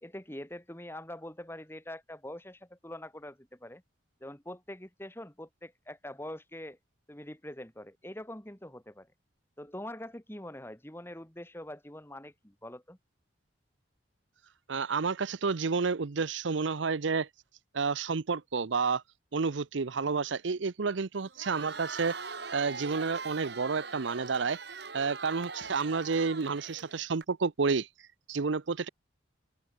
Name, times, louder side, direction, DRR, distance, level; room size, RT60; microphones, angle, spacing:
voice 1, 0.0-3.8 4.2-6.8 7.1-9.1 9.6-13.0, left 1 dB, 10° left, 2.8 m, -44 dB
voice 2, 14.7-17.3 17.7-19.0 19.3-22.2 22.5-24.6 24.9-27.9 28.3-28.9, right 4 dB, 75° right, 0.7 m, -30 dB
Crowd, 21.2-27.2, right 4 dB, 60° right, 3.6 m, -42 dB
open air
head